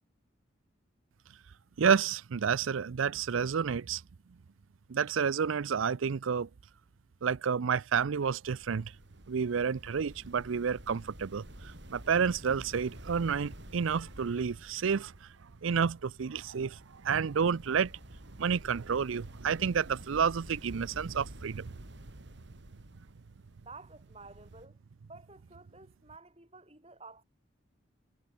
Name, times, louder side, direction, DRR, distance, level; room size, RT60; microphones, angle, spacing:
voice 1, 1.8-4.0 4.9-6.5 7.2-8.9 9.3-15.3 15.6-17.9 18.4-21.7, right 6 dB, 80° right, 0.5 m, -30 dB
sound 1, 8.2-24.7, right 1 dB, 60° right, 4.7 m, -50 dB
voice 2, 23.7-24.8 25.1-27.2, right 3 dB, 30° right, 7.5 m, -52 dB
head